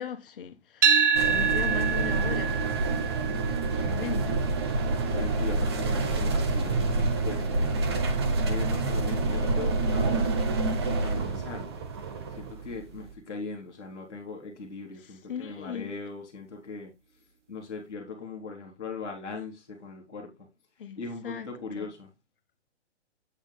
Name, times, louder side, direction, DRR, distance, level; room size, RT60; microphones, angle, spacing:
voice 1, 0.0-3.4 3.7-4.4 15.3-15.9 20.8-21.0 21.2-21.5 21.7-21.9, left 8 dB, 50° left, 1.4 m, -38 dB
sound 1, 0.8-9.0, right 6 dB, 85° right, 1.2 m, -29 dB
sound 2, 1.1-13.1, right 3 dB, 20° right, 0.7 m, -27 dB
voice 2, 4.9-10.3 10.9-11.8 12.3-16.9 17.5-20.3 20.9-22.1, left 4 dB, 5° left, 0.4 m, -39 dB
8.0 x 6.4 x 3.3 m
hypercardioid pair, 170°, 35 cm